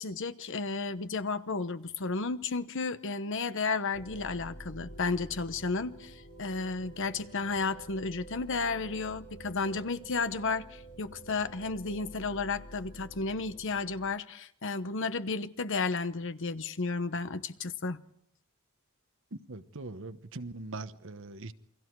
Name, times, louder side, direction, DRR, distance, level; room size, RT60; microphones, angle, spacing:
voice 1, 0.0-18.0, left 4 dB, 60° left, 1.0 m, -33 dB
sound 1, 3.9-14.1, right 1 dB, 90° left, 3.9 m, -49 dB
voice 2, 19.5-21.5, right 3 dB, 65° right, 1.1 m, -41 dB
29.0 x 23.0 x 4.7 m
head